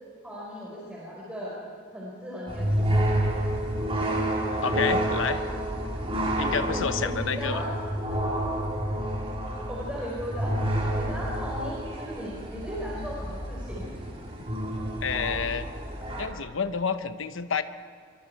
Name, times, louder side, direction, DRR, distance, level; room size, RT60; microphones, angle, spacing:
voice 1, 0.2-1.6 1.9-3.0 6.7-7.7 8.1-8.2 9.7-10.6 11.0-13.9, equal, 5° right, -6 dB, 4.9 m, -37 dB
sound 1, 2.5-16.3, right 1 dB, 30° right, 3.9 m, -29 dB
voice 2, 4.6-5.4 6.4-7.6 15.0-15.7 16.1-17.6, left 6 dB, 75° left, 10 dB, 0.9 m, -29 dB
25.0 x 24.0 x 4.7 m, 2.3 s
head